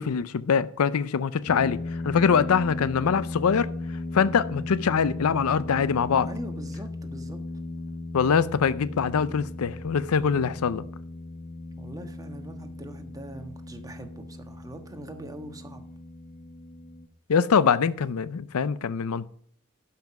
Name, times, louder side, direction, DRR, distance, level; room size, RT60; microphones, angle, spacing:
voice 1, 0.0-1.8 2.0-3.7 4.1-6.3 8.1-10.8 17.3-19.3, left 6 dB, 90° left, 0.5 m, -23 dB
sound 1, 1.5-17.1, left 2 dB, 40° left, 0.7 m, -37 dB
voice 2, 6.2-7.4 11.8-15.8, right 1 dB, 15° right, 1.3 m, -42 dB
12.0 x 5.9 x 5.8 m
head